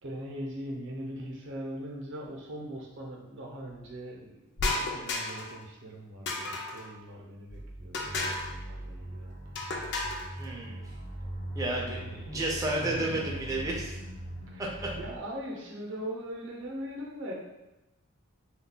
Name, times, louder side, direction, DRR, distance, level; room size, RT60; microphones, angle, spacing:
voice 1, 0.0-9.6 11.6-12.5 12.8-13.3 14.5-17.3, equal, 60° right, -1 dB, 0.6 m, -41 dB
sound 1, 4.6-5.5 6.3-6.9 7.9-8.5 9.5-10.3, left 2 dB, 55° left, 0.4 m, -32 dB
sound 2, 7.5-15.2, right 1 dB, 85° left, 0.8 m, -41 dB
voice 2, 10.4-10.8 11.6-14.0 14.6-14.9, right 1 dB, 15° right, -3 dB, 0.4 m, -32 dB
2.3 x 2.2 x 3.8 m, 0.99 s
head